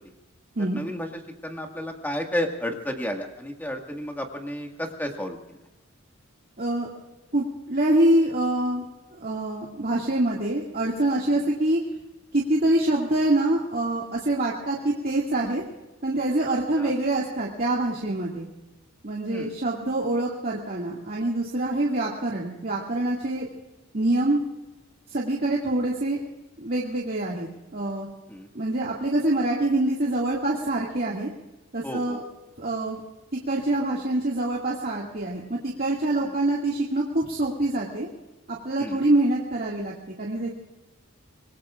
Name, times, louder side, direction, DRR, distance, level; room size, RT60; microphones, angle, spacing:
voice 1, 0.7-5.4 11.3-11.4 16.8-16.9 19.3-19.5 28.3-28.5 31.8-32.2 36.2-36.3 38.8-39.0, equal, 10° left, 2 dB, 1.8 m, -32 dB
voice 2, 6.6-6.9 7.3-8.8 9.1-11.8 12.3-15.6 16.0-18.5 19.0-23.5 23.9-24.4 25.1-26.2 26.6-28.1 28.5-31.3 31.7-32.2 32.6-33.0 33.3-38.1 38.5-40.5, right 1 dB, 45° right, -3 dB, 2.2 m, -25 dB
26.0 x 21.0 x 2.5 m, 1.0 s
head